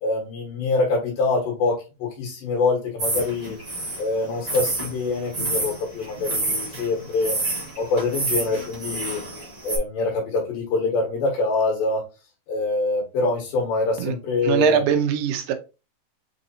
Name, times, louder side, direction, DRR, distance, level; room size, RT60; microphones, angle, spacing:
voice 1, 0.0-3.6 4.0-7.4 7.8-9.2 9.6-12.0 12.5-15.0, left 3 dB, 85° left, 3.0 m, -25 dB
sound 1, 3.0-9.8, right 2 dB, 30° right, 1.0 m, -29 dB
voice 2, 14.4-15.5, right 9 dB, 80° right, 2.0 m, -22 dB
6.1 x 2.7 x 2.6 m
omnidirectional pair, 3.9 m